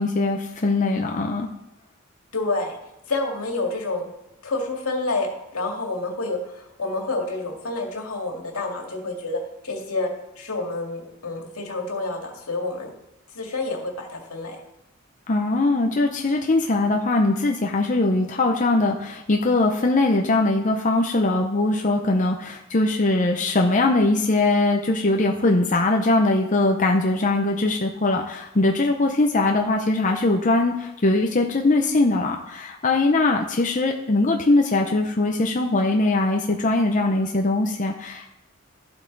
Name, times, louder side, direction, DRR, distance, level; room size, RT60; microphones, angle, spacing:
voice 1, 0.0-1.5 15.3-38.3, left 2 dB, 35° left, 2 dB, 0.7 m, -21 dB
voice 2, 2.3-2.8 3.1-4.1 4.4-5.3 5.5-9.4 9.6-10.1 10.4-12.9 13.3-14.6, left 2 dB, 85° left, 1 dB, 2.2 m, -28 dB
11.5 x 7.9 x 4.0 m, 0.90 s
head